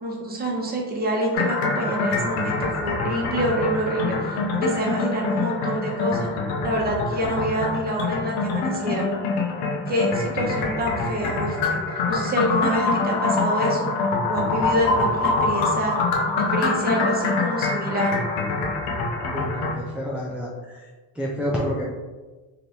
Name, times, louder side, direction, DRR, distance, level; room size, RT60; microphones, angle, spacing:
voice 1, 0.0-6.3 6.6-9.1 9.9-11.8 12.1-13.9 14.3-16.0 16.5-18.2, equal, 20° right, -2 dB, 0.9 m, -26 dB
sound 1, 1.3-19.7, left 3 dB, 80° left, 0.8 m, -25 dB
voice 2, 19.3-21.9, equal, 5° right, -6 dB, 0.4 m, -29 dB
2.9 x 2.5 x 3.3 m, 1.3 s
supercardioid pair, 85°, 44 cm